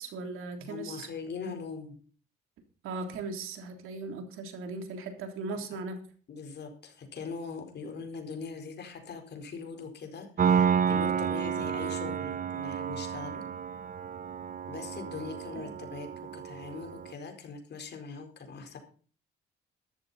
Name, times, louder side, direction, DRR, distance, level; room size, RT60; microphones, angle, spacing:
voice 1, 0.0-1.1 2.8-6.0 15.6-15.7, right 3 dB, 80° right, 5 dB, 3.3 m, -38 dB
voice 2, 0.6-2.0 5.5-5.8 6.3-13.5 14.7-18.8, left 5 dB, 55° left, 4 dB, 4.5 m, -41 dB
Piano, 10.4-17.1, right 7 dB, 40° right, 0.7 m, -30 dB
13.5 x 12.5 x 4.3 m, 0.42 s
cardioid pair, 90°, 21 cm